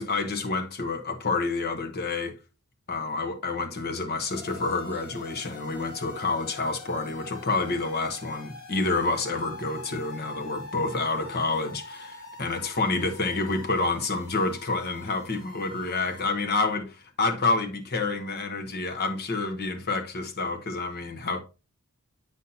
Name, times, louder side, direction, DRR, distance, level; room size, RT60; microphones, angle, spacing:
voice 1, 0.0-2.4 2.9-21.4, left 3 dB, 45° left, 1.1 m, -28 dB
sound 1, 4.3-16.3, left 3 dB, 70° left, 3.7 m, -44 dB
8.2 x 5.7 x 2.7 m
head